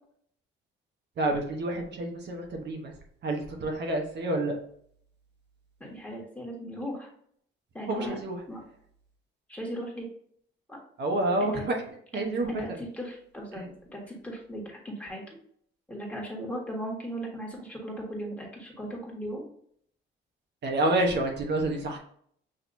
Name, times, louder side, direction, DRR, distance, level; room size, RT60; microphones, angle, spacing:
voice 1, 1.2-2.9 3.2-4.6 7.9-8.4 11.0-11.8 12.1-12.5 13.5-13.7 20.6-22.0, right 2 dB, 60° right, 2 dB, 0.9 m, -28 dB
voice 2, 5.8-7.1 7.7-8.2 8.5-8.6 9.5-10.1 10.7-10.8 11.4-11.6 12.1-15.2 15.9-19.4, equal, 5° left, -2 dB, 1.6 m, -37 dB
6.4 x 2.8 x 2.6 m, 0.64 s
cardioid pair, 90°, 20 cm